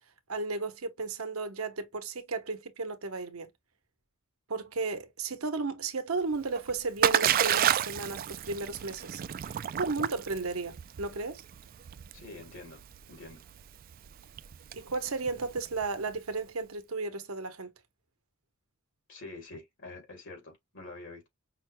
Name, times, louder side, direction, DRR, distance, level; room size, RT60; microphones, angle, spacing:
voice 1, 0.3-3.5 4.5-9.2 9.7-11.4 14.7-17.7, right 3 dB, 90° right, 1.0 m, -34 dB
Splash splatter, 6.3-16.2, right 10 dB, 45° right, 0.3 m, -31 dB
voice 2, 12.1-12.8 13.1-13.4 19.1-21.3, left 2 dB, 65° left, 2.3 m, -46 dB
5.6 x 2.2 x 3.1 m
head